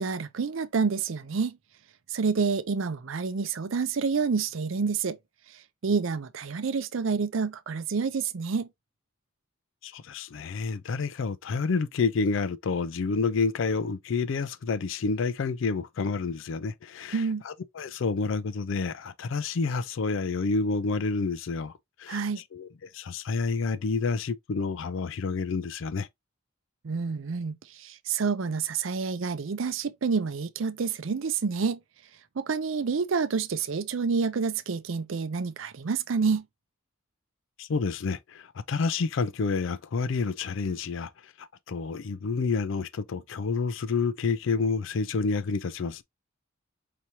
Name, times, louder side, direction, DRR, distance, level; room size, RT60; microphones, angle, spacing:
voice 1, 0.0-1.6 2.1-5.2 5.8-8.7 17.1-17.4 22.1-22.4 26.8-31.8 32.4-36.4, right 5 dB, 65° right, 0.5 m, -28 dB
voice 2, 9.8-21.7 22.0-22.2 22.5-26.1 37.6-46.0, left 4 dB, 65° left, 0.4 m, -29 dB
4.9 x 2.9 x 2.8 m
head